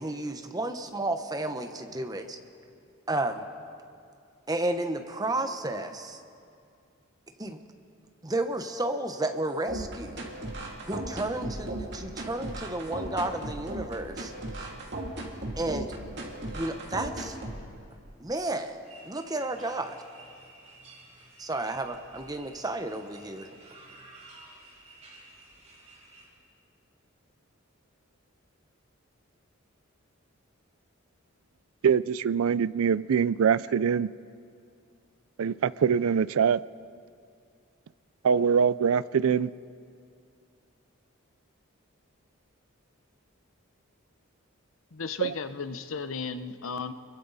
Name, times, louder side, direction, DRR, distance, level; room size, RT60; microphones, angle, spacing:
voice 1, 0.0-2.4 3.1-3.4 4.5-6.2 7.4-7.6 8.2-10.2 10.8-14.3 14.6-14.7 15.6-15.9 16.5-17.4 18.2-18.8 19.1-20.0 21.4-23.5, right 2 dB, 20° right, 6 dB, 1.0 m, -32 dB
sound 1, 9.7-17.7, right 1 dB, 55° right, 2.9 m, -36 dB
sound 2, 18.8-26.3, right 2 dB, 35° right, 5.6 m, -52 dB
voice 2, 31.8-34.1 35.4-36.6 38.2-39.5 45.2-45.3, right 7 dB, 85° right, 19 dB, 0.4 m, -23 dB
voice 3, 44.9-46.9, left 5 dB, 75° left, 10 dB, 0.9 m, -35 dB
29.0 x 22.5 x 4.1 m, 2.4 s
head